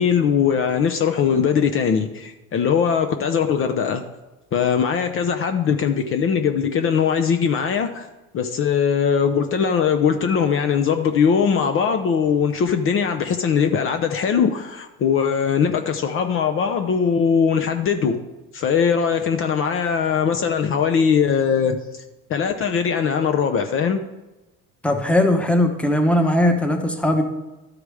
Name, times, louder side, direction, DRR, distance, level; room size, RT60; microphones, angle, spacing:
voice 1, 0.0-4.0 4.5-8.1 8.3-18.2 18.5-22.0 22.3-24.0, left 7 dB, 45° left, 7 dB, 0.7 m, -20 dB
voice 2, 24.8-27.2, left 1 dB, 5° left, 5 dB, 1.0 m, -19 dB
12.0 x 4.9 x 4.8 m, 1.1 s
cardioid pair, 110°, 30 cm